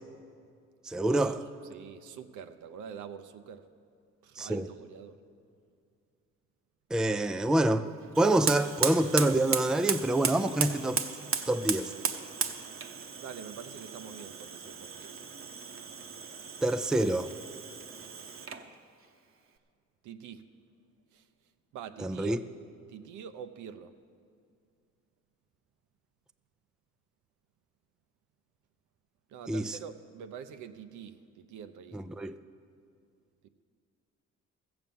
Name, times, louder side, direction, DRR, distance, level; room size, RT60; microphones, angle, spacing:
voice 1, 0.9-1.4 4.4-4.7 6.9-7.9 8.2-11.0 11.5-11.9 16.6-17.3 22.0-22.4 29.5-29.8 31.9-32.4, right 1 dB, ahead, 11 dB, 0.3 m, -26 dB
voice 2, 1.7-3.6 4.2-5.2 13.2-15.1 20.0-20.4 21.1-21.2 21.7-22.4 22.9-23.9 29.3-32.0, right 8 dB, 80° right, 9 dB, 0.7 m, -45 dB
Fire, 8.1-18.7, right 6 dB, 45° right, 0.9 m, -35 dB
14.5 x 7.9 x 7.0 m, 2.3 s
cardioid pair, 90°, 30 cm